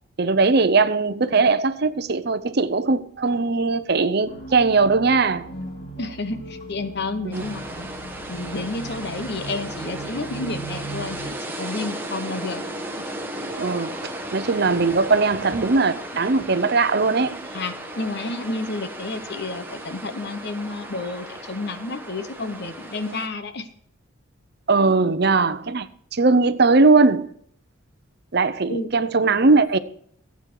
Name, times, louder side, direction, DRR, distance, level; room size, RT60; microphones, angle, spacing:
voice 1, 0.2-5.5 7.3-7.4 13.4-14.0 14.3-17.4 24.7-27.3 28.3-29.8, right 3 dB, 50° right, 0.7 m, -19 dB
sound 1, 4.3-11.2, right 2 dB, 35° left, 3.4 m, -38 dB
voice 2, 6.0-7.9 8.3-12.6 13.0-13.1 17.5-23.7 28.7-28.9, left 2 dB, 50° left, 1.1 m, -31 dB
sound 2, 7.3-23.3, right 1 dB, 10° right, 1.3 m, -35 dB
15.5 x 8.4 x 4.7 m
head